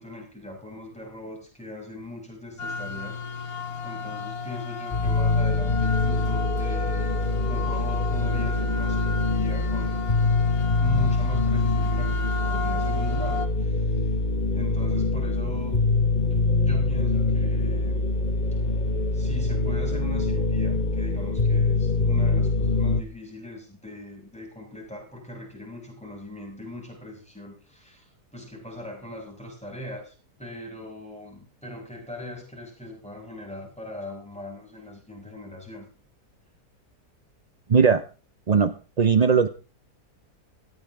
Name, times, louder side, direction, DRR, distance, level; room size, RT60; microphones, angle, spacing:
voice 1, 0.0-7.2 7.5-10.1 10.8-14.1 14.5-15.8 16.6-18.1 19.1-30.1 30.4-35.8, left 1 dB, 5° left, 0 dB, 6.0 m, -40 dB
sound 1, 2.6-13.5, left 4 dB, 60° left, 1.9 m, -34 dB
sound 2, 4.9-23.0, left 3 dB, 30° left, 1.5 m, -24 dB
voice 2, 37.7-38.0 38.5-39.5, right 6 dB, 50° right, 11 dB, 0.5 m, -19 dB
17.5 x 15.0 x 3.6 m, 0.35 s
omnidirectional pair, 1.8 m